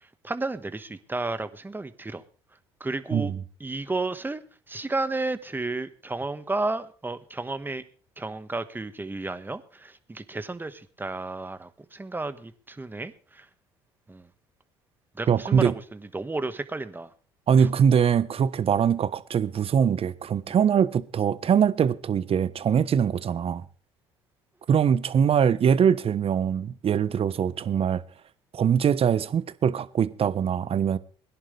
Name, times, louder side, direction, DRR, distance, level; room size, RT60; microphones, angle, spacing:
voice 1, 0.2-2.2 2.8-3.3 3.6-4.4 4.7-7.8 8.2-13.5 14.1-14.3 15.1-17.1 17.6-17.7 20.5-20.6, right 2 dB, 15° right, 1.5 m, -32 dB
voice 2, 15.3-15.7 17.5-23.6 24.7-28.0 28.5-31.0, right 7 dB, 45° right, 1.1 m, -22 dB
21.0 x 11.0 x 3.4 m
hypercardioid pair, 65°, 14 cm